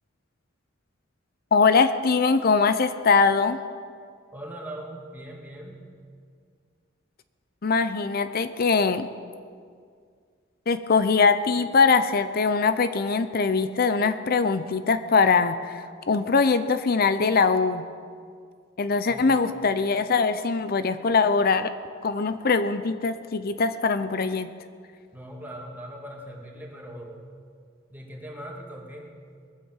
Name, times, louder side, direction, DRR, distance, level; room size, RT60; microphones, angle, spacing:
voice 1, 1.5-3.6 7.6-9.1 10.7-17.8 18.8-21.7 22.0-24.5, left 4 dB, 50° left, 11 dB, 0.6 m, -22 dB
voice 2, 4.3-5.8 19.1-19.4 25.1-27.2 27.9-29.1, right 1 dB, 10° right, -2 dB, 2.5 m, -40 dB
20.5 x 9.1 x 7.4 m, 2.1 s
head